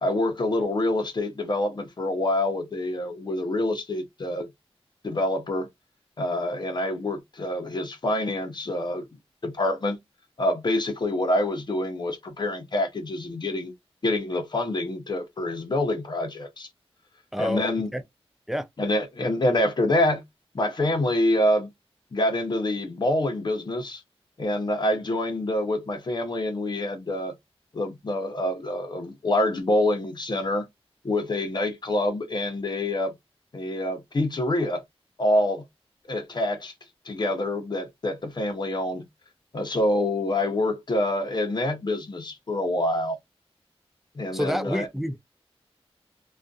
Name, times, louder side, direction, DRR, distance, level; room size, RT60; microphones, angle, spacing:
voice 1, 0.0-4.5 5.0-5.7 6.2-9.0 9.4-10.0 10.4-13.7 14.0-16.7 17.4-17.9 18.8-20.2 20.5-21.7 22.1-24.0 24.4-27.3 27.7-30.7 31.0-33.1 33.5-34.8 35.2-35.6 36.1-36.7 37.0-39.0 39.5-43.2 44.1-44.9, left 1 dB, 45° left, 0.7 m, -26 dB
voice 2, 17.3-17.6 17.9-18.0 18.5-18.7 44.3-45.2, equal, 5° right, 0.4 m, -28 dB
2.5 x 2.3 x 2.3 m
wide cardioid pair, 115°, 11 cm